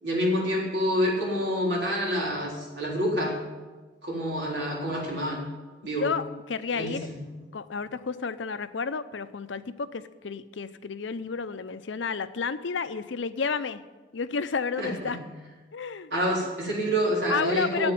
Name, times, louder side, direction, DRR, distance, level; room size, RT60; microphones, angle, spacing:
voice 1, 0.0-3.4 4.0-5.4 5.8-6.1 6.7-7.0 14.8-15.2 16.1-17.9, equal, 75° right, -3 dB, 3.9 m, -27 dB
voice 2, 6.0-7.1 7.5-13.8 14.1-15.2 15.7-16.1 17.3-17.9, left 5 dB, 90° left, 12 dB, 0.6 m, -31 dB
8.8 x 8.6 x 9.2 m, 1.3 s
head